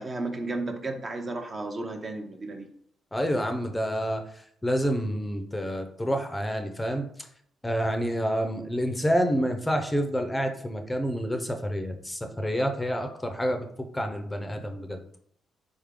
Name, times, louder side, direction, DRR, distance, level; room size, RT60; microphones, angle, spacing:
voice 1, 0.0-2.7, right 2 dB, 35° right, 4 dB, 0.7 m, -33 dB
voice 2, 3.1-7.1 7.6-13.7 13.9-15.0, equal, 10° left, 6 dB, 0.6 m, -28 dB
4.0 x 3.5 x 3.7 m, 0.67 s
cardioid pair, 90°, 0 cm